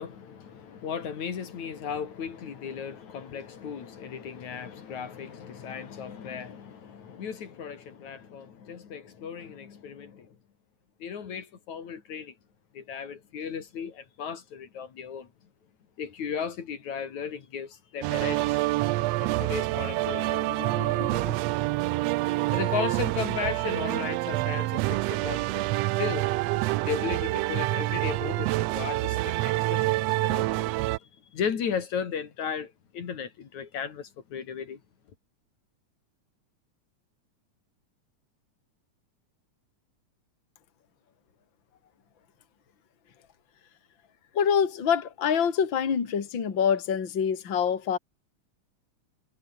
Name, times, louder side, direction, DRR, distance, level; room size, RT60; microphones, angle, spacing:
voice 1, 0.0-10.4 11.0-12.3 12.7-15.3 16.0-18.6 19.2-21.4 22.4-26.3 26.9-34.8, left 7 dB, 75° left, 4.0 m, -36 dB
sound 1, 18.0-31.0, right 18 dB, 80° right, 1.5 m, -27 dB
voice 2, 44.3-48.0, left 7 dB, 40° left, 3.0 m, -25 dB
omnidirectional pair, 3.4 m